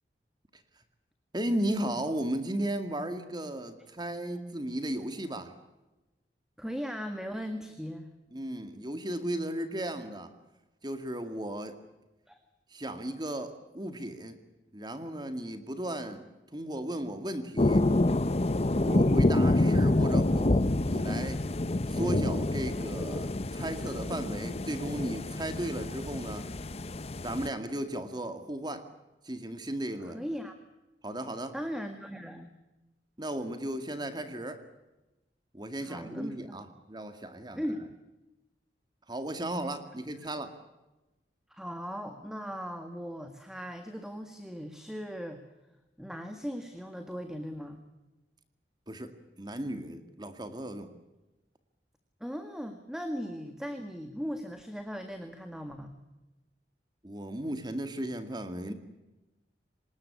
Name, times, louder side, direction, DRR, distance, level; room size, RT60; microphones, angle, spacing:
voice 1, 1.3-5.5 8.3-10.3 10.8-11.7 12.7-14.4 14.7-16.3 16.5-17.8 18.8-21.4 21.9-26.5 27.2-28.9 29.2-30.2 31.0-31.5 33.2-34.6 35.5-37.6 39.1-40.5 48.9-50.9 57.0-58.7, right 1 dB, 25° right, 9 dB, 2.1 m, -35 dB
voice 2, 6.6-8.1 12.3-12.4 30.1-30.5 31.5-32.5 35.8-36.6 37.6-37.9 41.5-45.5 46.0-47.8 52.2-55.9, equal, 5° right, 7 dB, 1.8 m, -38 dB
sound 1, 17.6-27.5, left 2 dB, 35° left, 0.8 m, -27 dB
25.0 x 20.5 x 8.4 m, 1.0 s
head